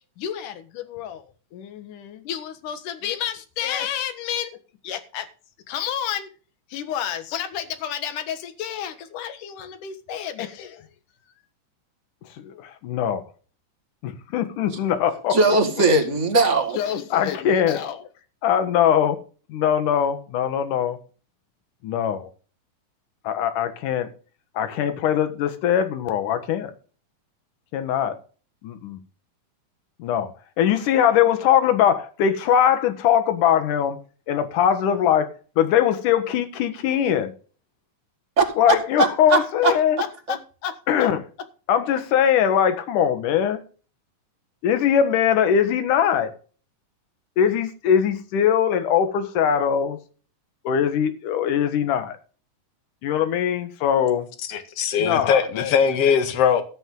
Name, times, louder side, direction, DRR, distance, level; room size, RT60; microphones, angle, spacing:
voice 1, 0.2-1.2 1.5-4.5 4.8-5.3 5.7-6.3 6.7-10.8 12.3-13.3 14.0-15.4 16.7-18.1 18.4-19.2 19.5-21.0 21.8-22.3 23.2-24.1 24.5-26.7 27.7-28.2 28.6-29.0 30.0-30.3 30.6-34.0 34.3-35.3 35.6-37.3 38.6-40.0 40.3-40.4 40.6-41.2 41.7-43.6 44.6-46.3 47.4-50.0 50.6-52.2 53.0-54.3 55.0-55.7 56.1-56.2, left 9 dB, 70° left, 2.9 m, -22 dB
voice 2, 15.3-16.8 38.4-38.5 39.0-39.7 40.3-40.4, right 3 dB, 30° right, 1.6 m, -19 dB
voice 3, 54.5-56.6, left 7 dB, 50° left, 2.3 m, -20 dB
13.5 x 9.0 x 3.8 m
omnidirectional pair, 4.0 m